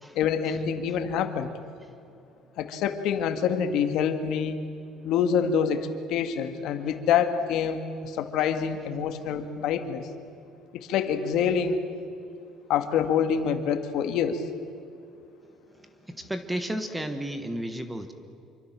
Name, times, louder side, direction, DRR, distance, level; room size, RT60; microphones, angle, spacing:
voice 1, 0.2-1.5 2.6-4.6 5.0-10.1 10.7-11.8 12.7-14.5, left 7 dB, 60° left, 8 dB, 2.0 m, -26 dB
voice 2, 16.0-18.1, right 1 dB, 5° right, 9 dB, 1.3 m, -33 dB
27.0 x 24.0 x 7.6 m, 2.7 s
cardioid pair, 170°, 0 cm